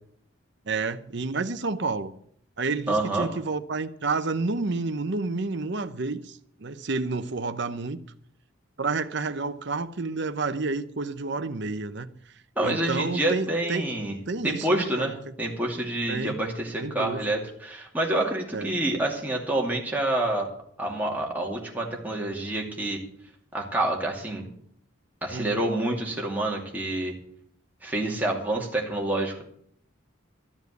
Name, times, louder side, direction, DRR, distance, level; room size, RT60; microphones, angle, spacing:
voice 1, 0.7-2.1 2.6-8.0 8.8-12.1 12.6-13.9 14.3-15.1 16.1-16.4 16.8-17.2 18.5-18.8 25.3-25.5, right 3 dB, 60° right, 0.8 m, -30 dB
voice 2, 2.9-3.3 12.6-14.2 14.4-20.5 20.8-23.0 23.5-24.5 25.2-27.1 27.8-29.4, right 1 dB, 10° right, 2.5 m, -27 dB
13.5 x 7.3 x 8.0 m
head